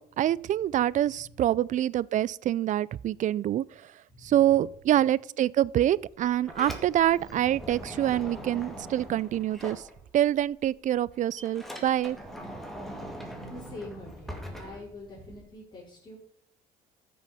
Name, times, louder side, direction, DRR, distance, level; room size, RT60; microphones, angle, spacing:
voice 1, 0.0-3.6 4.2-9.8 10.1-12.2, right 12 dB, 50° right, 0.4 m, -26 dB
voice 2, 4.1-4.5 8.4-8.5 13.4-16.2, left 2 dB, 30° left, 4.1 m, -45 dB
Sliding door, 6.1-10.4 10.7-15.5, equal, ahead, 2.1 m, -42 dB
13.5 x 6.3 x 5.6 m
cardioid pair, 110°, 17 cm